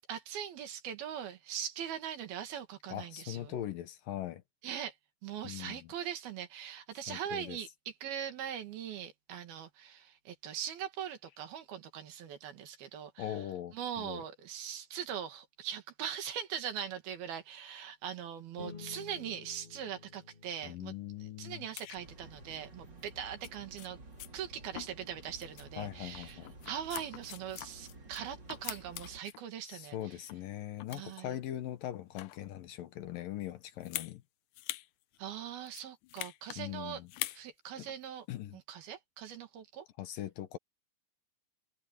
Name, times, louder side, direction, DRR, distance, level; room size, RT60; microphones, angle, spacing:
voice 1, 0.1-3.5 4.6-5.0 5.2-13.4 13.7-20.9 21.2-24.0 24.3-30.2 30.9-31.4 35.2-37.0 37.3-38.3 38.5-39.9, right 9 dB, 75° right, 3.8 m, -41 dB
voice 2, 2.9-4.4 5.4-5.9 7.1-7.6 13.2-14.2 20.6-21.7 25.8-26.5 29.7-34.2 36.6-37.1 37.8-37.9 38.3-38.6 40.0-40.6, left 12 dB, 70° left, 2.6 m, -41 dB
sound 1, 18.6-29.3, left 5 dB, 40° left, 0.7 m, -56 dB
sound 2, 21.8-22.0 23.0-23.1 23.4-23.5 23.8-23.9 24.2-24.3 24.7-25.1 25.4-25.7 26.1-28.2 28.5-29.4 29.9-30.5 30.8-31.3 31.9-32.5 33.8-34.1 34.5-34.9 35.1-35.2 35.6-36.6 37.1-37.4 37.9-38.0, left 16 dB, 90° left, 1.8 m, -43 dB
sound 3, 22.0-29.2, right 2 dB, 30° right, 3.8 m, -53 dB
omnidirectional pair, 4.5 m